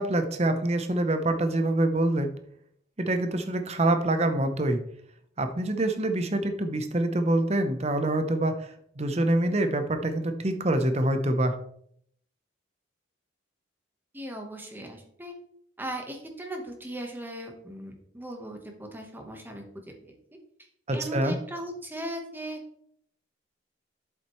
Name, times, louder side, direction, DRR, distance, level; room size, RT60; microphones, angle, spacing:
voice 1, 0.0-2.3 3.0-4.8 5.4-8.7 9.0-11.6 20.9-21.4, right 1 dB, 35° right, 8 dB, 0.8 m, -25 dB
voice 2, 14.1-15.3 15.8-19.6 20.0-20.1 20.9-22.6, right 1 dB, 10° right, 3 dB, 1.1 m, -38 dB
7.9 x 7.3 x 3.1 m, 0.68 s
head